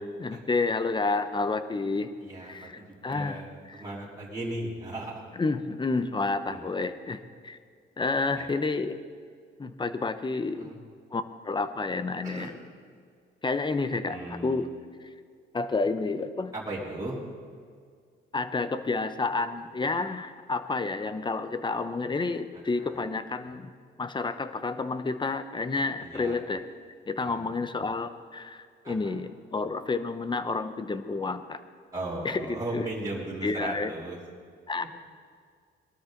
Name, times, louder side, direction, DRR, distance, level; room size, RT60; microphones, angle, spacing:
voice 1, 0.2-2.1 2.4-3.4 5.4-7.2 7.4-7.6 8.0-9.0 9.6-10.7 11.1-12.5 13.4-14.7 15.5-16.5 18.3-23.7 24.0-26.6 27.1-31.6 32.2-32.8 33.4-33.9 34.7-34.8, left 3 dB, 25° left, 11 dB, 1.0 m, -30 dB
voice 2, 2.2-5.2 6.5-6.7 8.4-8.5 10.6-10.8 12.2-12.5 14.1-14.7 16.5-17.2 22.5-23.0 26.0-26.4 27.2-27.5 28.8-29.1 31.9-34.2, right 1 dB, 15° right, -7 dB, 3.5 m, -37 dB
21.0 x 13.0 x 4.0 m, 2.1 s
cardioid pair, 90°, 20 cm